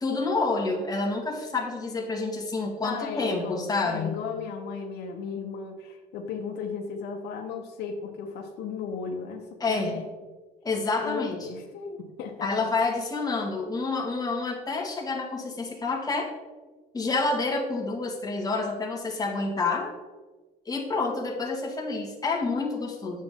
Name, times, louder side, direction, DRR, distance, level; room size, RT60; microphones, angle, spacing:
voice 1, 0.0-4.2 9.6-10.0 10.6-11.4 12.4-16.3 16.9-19.9 20.7-23.2, left 3 dB, 20° left, 0 dB, 1.9 m, -28 dB
voice 2, 2.8-10.1 11.0-12.7, left 5 dB, 75° left, 3 dB, 1.1 m, -35 dB
9.6 x 7.3 x 3.7 m, 1.3 s
cardioid pair, 110°, 17 cm